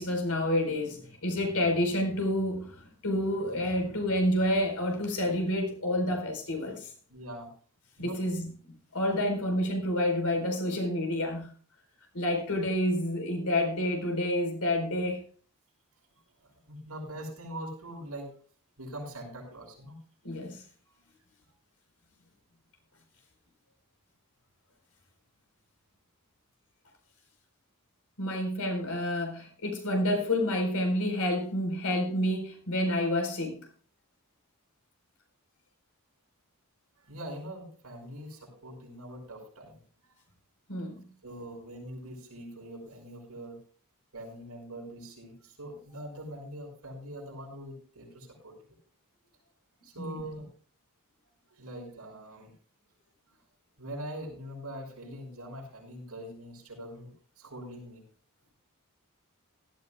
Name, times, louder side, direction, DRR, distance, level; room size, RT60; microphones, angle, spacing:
voice 1, 0.0-6.9 8.0-8.5 8.9-11.5 12.1-15.2 20.2-20.6 28.2-33.7 40.7-41.1 50.0-50.2, left 1 dB, 80° left, 3 dB, 4.3 m, -29 dB
voice 2, 7.1-7.5 8.0-8.2 16.4-18.3 18.8-20.0 37.0-39.8 41.2-43.6 44.1-48.5 49.8-50.4 51.5-52.5 53.8-57.1 57.4-58.0, right 1 dB, 85° right, -1 dB, 6.2 m, -43 dB
18.0 x 13.5 x 2.3 m, 0.42 s
head